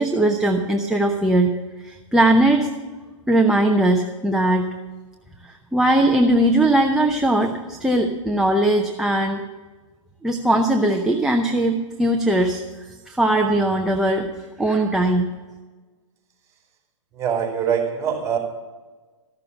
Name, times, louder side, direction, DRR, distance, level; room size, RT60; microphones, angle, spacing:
voice 1, 0.0-1.5 1.8-2.7 3.3-4.7 5.5-9.4 10.2-12.6 13.1-14.3 14.6-15.3, right 1 dB, 5° right, 1 dB, 0.7 m, -19 dB
voice 2, 17.1-18.4, right 7 dB, 20° right, 0 dB, 3.9 m, -23 dB
14.0 x 6.8 x 7.2 m, 1.3 s
hypercardioid pair, 120°, 16 cm